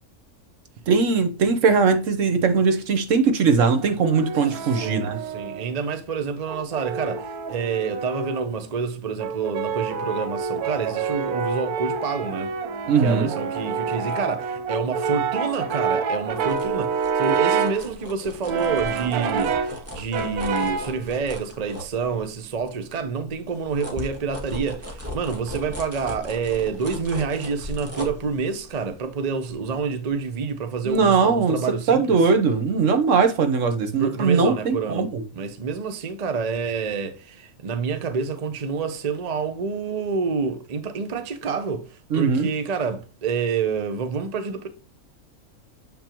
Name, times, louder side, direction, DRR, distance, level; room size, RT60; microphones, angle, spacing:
voice 1, 0.9-5.2 12.9-13.3 30.8-31.6 31.9-35.2 42.1-42.5, right 5 dB, 60° right, 1.2 m, -20 dB
Brass instrument, 3.8-5.7 6.5-8.5 9.2-17.9 18.5-19.8 20.1-21.0, right 5 dB, 85° right, 1.3 m, -27 dB
voice 2, 4.6-12.5 13.0-32.2 34.0-35.1 35.3-44.7, right 5 dB, 40° right, 0.6 m, -28 dB
sound 1, 16.2-22.5 22.9-30.5 30.9-31.0, left 1 dB, 10° right, 1.2 m, -38 dB
7.4 x 5.3 x 2.9 m
omnidirectional pair, 1.5 m